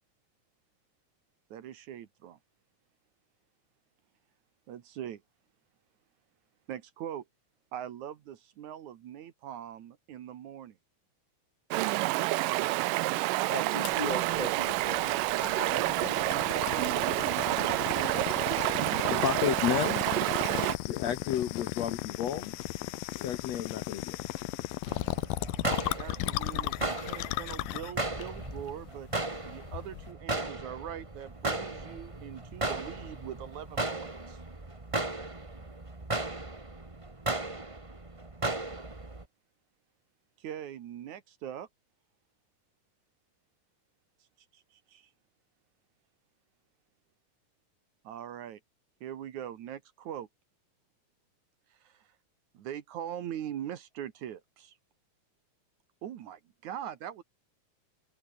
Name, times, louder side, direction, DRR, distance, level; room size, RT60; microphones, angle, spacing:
voice 1, 1.5-2.4 4.7-5.2 6.7-7.3 7.7-10.8 12.4-12.8 17.6-18.1 18.5-18.7 26.0-29.1 29.4-34.4 40.4-41.7 44.5-45.1 48.0-48.6 49.0-50.3 51.8-52.1 52.5-54.7 56.0-57.2, right 10 dB, 65° right, 2.5 m, -42 dB
Stream, 11.7-20.8, right 19 dB, 80° right, 2.2 m, -28 dB
voice 2, 13.5-16.5, left 1 dB, 25° left, 0.8 m, -38 dB
sound 1, 13.9-30.1, left 17 dB, 85° left, 2.6 m, -36 dB
voice 3, 19.1-20.0 20.9-22.5 23.2-24.2, left 10 dB, 65° left, 1.9 m, -31 dB
sound 2, 24.9-39.2, right 2 dB, 20° right, 0.8 m, -36 dB
omnidirectional pair, 4.0 m